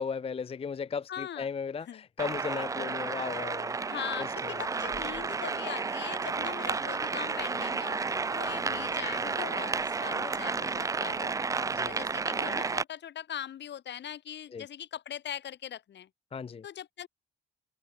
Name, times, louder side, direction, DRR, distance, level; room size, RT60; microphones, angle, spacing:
voice 1, 0.0-3.7 4.2-4.5 8.4-8.9 11.7-12.0 14.5-14.6 16.3-16.6, left 6 dB, 30° left, 0.6 m, -36 dB
voice 2, 1.1-1.5 1.9-2.0 3.9-11.3 11.8-16.1 16.6-17.1, left 10 dB, 60° left, 2.3 m, -41 dB
sound 1, 2.2-12.8, right 4 dB, 15° right, 0.3 m, -32 dB
open air
cardioid pair, 90°, 20 cm